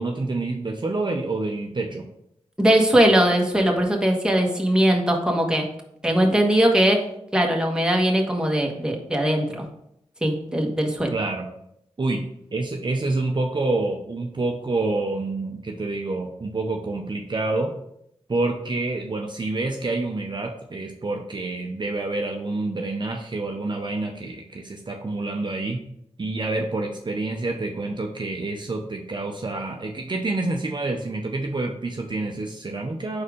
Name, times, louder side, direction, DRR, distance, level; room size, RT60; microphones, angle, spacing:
voice 1, 0.0-2.0 11.1-11.5 12.0-12.2 12.5-17.7 18.3-25.8 26.2-33.2, right 2 dB, 45° right, 2 dB, 0.7 m, -27 dB
voice 2, 2.6-5.7 6.0-7.0 7.3-9.6 10.2-11.1, right 1 dB, 5° right, 1 dB, 1.3 m, -20 dB
4.8 x 4.2 x 5.0 m, 0.75 s
cardioid pair, 50°, 11 cm